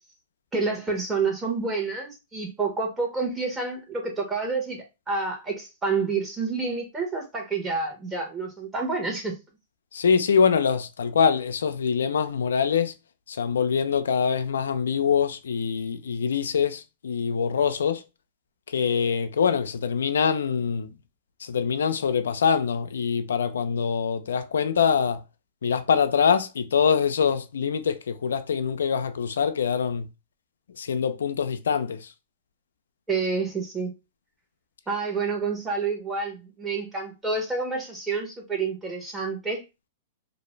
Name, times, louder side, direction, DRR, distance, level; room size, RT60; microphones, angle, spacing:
voice 1, 0.5-9.3 33.1-33.9 34.9-39.6, right 4 dB, 15° right, 1.0 m, -28 dB
voice 2, 9.9-12.9 13.3-18.0 18.7-20.9 21.4-25.2 25.6-30.1 30.8-32.1, left 6 dB, 90° left, 0.3 m, -24 dB
2.5 x 2.1 x 3.1 m
hypercardioid pair, 130°, 0 cm